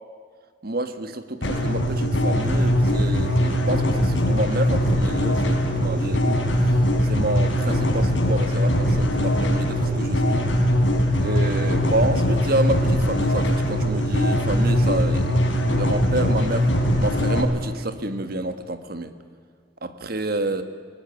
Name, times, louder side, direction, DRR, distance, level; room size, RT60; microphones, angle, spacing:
voice 1, 0.6-10.5 11.2-15.4 15.6-19.1 19.8-20.6, right 2 dB, 50° right, 10 dB, 1.5 m, -28 dB
sound 1, 1.4-17.4, equal, 75° left, 4.6 m, -21 dB
19.5 x 19.0 x 9.4 m, 2.1 s
head